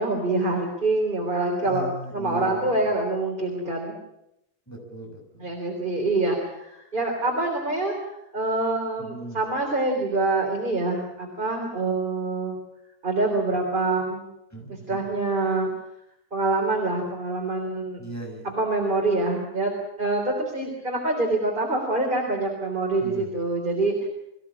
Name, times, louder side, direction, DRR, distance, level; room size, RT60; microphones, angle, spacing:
voice 1, 0.0-1.8 2.1-4.0 5.4-12.6 13.0-14.3 14.7-15.7 16.3-18.0 18.4-19.7 20.0-24.1, right 2 dB, 30° right, 0 dB, 3.8 m, -25 dB
voice 2, 1.6-2.8 4.7-5.5 9.0-9.4 14.5-15.1 18.0-18.5 23.0-23.3, right 1 dB, 10° left, 1 dB, 6.2 m, -38 dB
24.5 x 15.5 x 8.7 m, 0.82 s
omnidirectional pair, 1.6 m